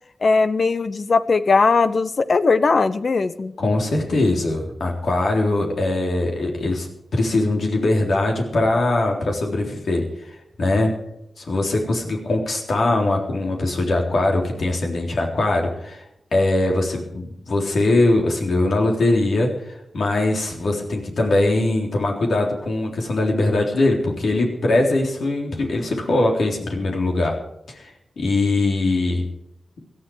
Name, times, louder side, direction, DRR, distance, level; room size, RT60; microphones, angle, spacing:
voice 1, 0.2-3.5, left 4 dB, 60° left, 13 dB, 0.8 m, -19 dB
voice 2, 3.6-11.0 11.4-16.0 16.3-27.4 27.7-29.3, left 2 dB, 75° left, 1 dB, 3.7 m, -21 dB
17.5 x 12.5 x 4.9 m, 0.80 s
cardioid pair, 55°, 0 cm